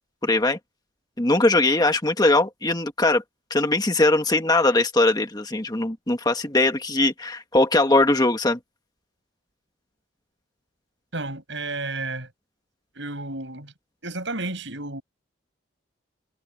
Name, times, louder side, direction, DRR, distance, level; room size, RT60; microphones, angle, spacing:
voice 1, 0.2-0.6 1.2-3.2 3.5-8.6, left 2 dB, 20° left, 1.4 m, -20 dB
voice 2, 11.1-12.3 13.0-13.7 14.0-15.0, right 2 dB, 65° right, 7.1 m, -32 dB
head